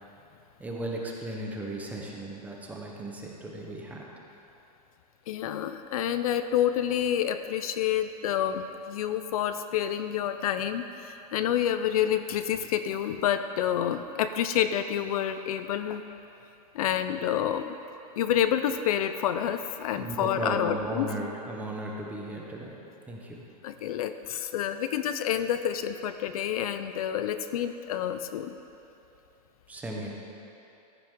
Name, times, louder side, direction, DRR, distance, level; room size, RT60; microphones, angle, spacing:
voice 1, 0.6-4.0 20.0-22.7 23.1-23.3 29.7-30.1, right 1 dB, 5° right, -1 dB, 0.8 m, -35 dB
voice 2, 5.3-16.0 16.7-17.8 18.2-21.1 23.6-28.6, left 10 dB, 60° left, 10 dB, 0.5 m, -28 dB
14.5 x 6.0 x 3.7 m, 2.9 s
supercardioid pair, 160°, 21 cm